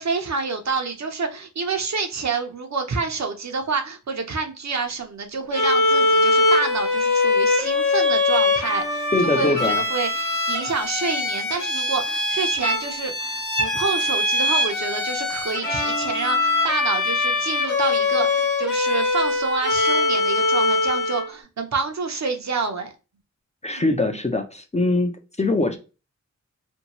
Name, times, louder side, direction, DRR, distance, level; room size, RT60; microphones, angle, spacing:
voice 1, 0.0-9.1 9.3-22.9 23.6-23.8, right 4 dB, 60° right, 5 dB, 0.7 m, -28 dB
Bowed string instrument, 5.5-21.3, left 2 dB, 75° left, 0.9 m, -22 dB
voice 2, 9.1-9.8 23.6-25.8, left 2 dB, 20° left, 5 dB, 0.4 m, -22 dB
2.6 x 2.2 x 2.9 m, 0.32 s
wide cardioid pair, 60°, 31 cm